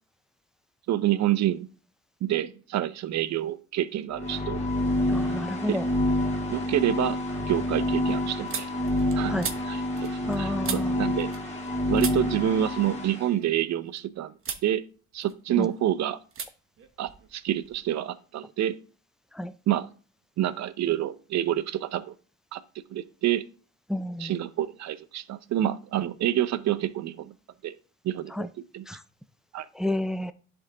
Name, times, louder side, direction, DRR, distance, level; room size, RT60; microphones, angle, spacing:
voice 1, 0.9-1.7 2.2-4.6 5.7-5.8 6.5-7.2 7.5-8.7 9.2-9.3 9.6-11.3 11.9-14.4 14.6-14.8 15.1-16.2 17.0-18.8 19.7-19.9 20.4-22.1 22.5-22.6 22.9-23.4 24.2-27.3 27.6-27.7 28.0-28.5 28.7-28.9 29.5-29.7, right 12 dB, 65° right, 0.6 m, -28 dB
sound 1, 4.1-13.2, left 1 dB, 20° left, 2.1 m, -28 dB
voice 2, 5.1-5.8 9.3-9.5 10.3-10.9 15.6-15.7 19.3-19.5 23.9-24.4 28.3-28.5 28.9-29.0 29.7-30.3, left 1 dB, ahead, 0.4 m, -30 dB
sound 2, 5.7-6.3 6.7-11.7 12.0-14.0 14.4-14.7 15.1-15.8 16.3-16.5 16.8-17.8, right 6 dB, 45° right, 1.1 m, -39 dB
10.5 x 3.5 x 3.8 m
cardioid pair, 90°, 30 cm